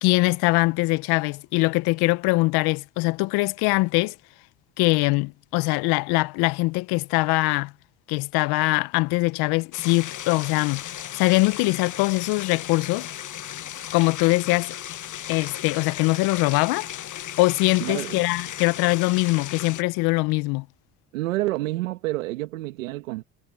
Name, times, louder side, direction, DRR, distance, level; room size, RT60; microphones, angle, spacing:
voice 1, 0.0-4.1 4.8-7.7 8.1-10.8 11.1-13.1 13.9-14.7 15.3-16.9 17.4-20.7, left 24 dB, 75° left, 1.0 m, -22 dB
sound 1, 9.7-19.8, left 11 dB, 50° left, 1.3 m, -36 dB
voice 2, 17.8-18.2 21.1-23.2, right 18 dB, 90° right, 1.6 m, -28 dB
hypercardioid pair, 60°, 38 cm